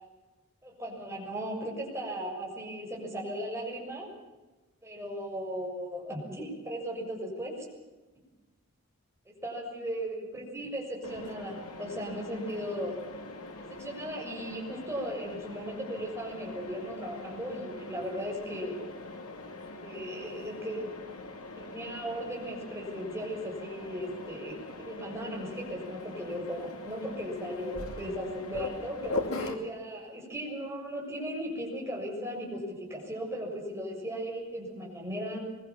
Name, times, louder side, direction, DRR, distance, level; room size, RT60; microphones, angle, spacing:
voice 1, 0.6-4.1 4.8-7.6 9.4-12.9 13.7-18.8 19.8-20.9 21.6-35.4, equal, 10° right, -2 dB, 6.8 m, -37 dB
Mechanisms, 11.0-29.5, left 2 dB, 85° left, 2.6 m, -41 dB
24.5 x 22.0 x 7.3 m, 1.2 s
head